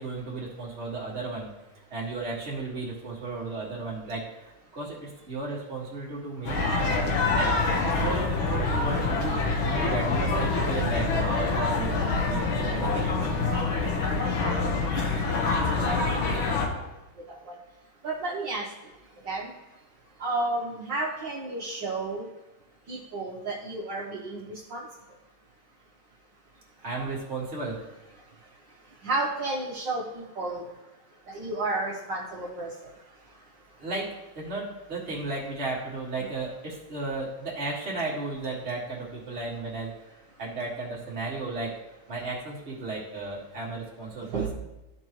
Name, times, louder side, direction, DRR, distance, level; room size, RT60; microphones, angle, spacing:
voice 1, 0.0-1.5 1.9-6.6 7.3-7.5 7.8-13.2 26.8-27.8 33.8-34.1 34.3-39.9 40.4-41.7 42.1-44.5, right 3 dB, 35° right, -4 dB, 2.0 m, -34 dB
sound 1, 6.4-16.7, left 3 dB, 70° left, 1.9 m, -26 dB
voice 2, 15.8-16.4 16.8-16.9 17.4-17.5 18.0-18.6 19.2-19.5 20.2-22.3 22.9-24.8 29.0-30.6 31.3-32.9 36.2-36.3 44.3-44.5, right 2 dB, 60° right, -5 dB, 1.7 m, -32 dB
13.5 x 4.6 x 3.0 m, 1.0 s
omnidirectional pair, 2.3 m